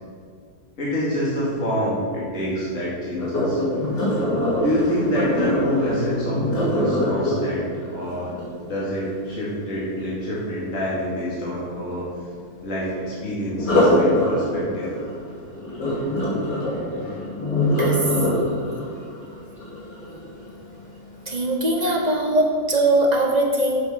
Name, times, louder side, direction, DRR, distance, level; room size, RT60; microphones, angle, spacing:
voice 1, 0.8-3.6 4.6-8.3 8.6-12.1 12.6-15.0, equal, 50° left, -7 dB, 2.8 m, -26 dB
Sink (filling or washing), 3.2-9.1 13.5-20.6 21.1-21.4 21.9-22.0, left 1 dB, 85° left, 3.2 m, -23 dB
voice 2, 21.3-23.8, right 1 dB, 30° right, 0 dB, 1.1 m, -21 dB
8.1 x 7.5 x 5.7 m, 2.1 s
omnidirectional pair, 1.7 m